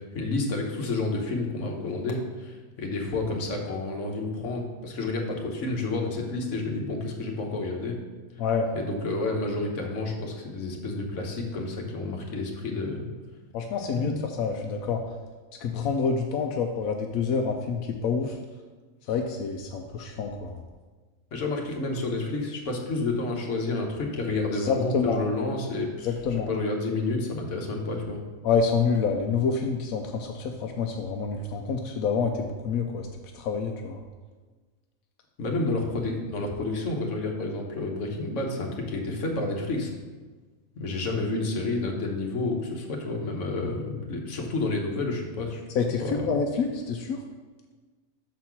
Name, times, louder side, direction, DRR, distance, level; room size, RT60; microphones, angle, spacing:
voice 1, 0.1-7.9 8.7-13.1 13.9-14.2 21.3-26.1 26.5-28.2 35.4-39.9 40.8-45.6 46.0-46.3, left 2 dB, 60° left, 1 dB, 1.4 m, -30 dB
voice 2, 8.4-8.7 13.5-15.0 15.6-18.4 19.1-20.6 24.5-25.2 26.0-26.5 28.4-33.1 33.3-34.0 45.7-47.2, left 5 dB, 85° left, 3 dB, 1.0 m, -27 dB
6.5 x 4.2 x 5.9 m, 1.3 s
omnidirectional pair, 1.4 m